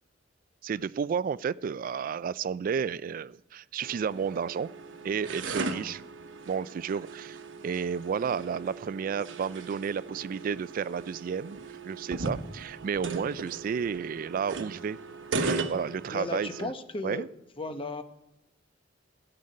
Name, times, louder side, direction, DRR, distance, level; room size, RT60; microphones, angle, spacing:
voice 1, 0.6-4.7 5.0-6.0 6.5-7.4 7.6-15.0 15.4-16.7 17.0-17.3, right 6 dB, 45° right, 18 dB, 0.3 m, -32 dB
sound 1, 3.8-16.7, right 3 dB, 85° right, 1.0 m, -37 dB
voice 2, 16.1-17.3 17.6-18.0, left 2 dB, 30° left, 8 dB, 0.9 m, -35 dB
16.0 x 7.7 x 5.4 m, 0.95 s
head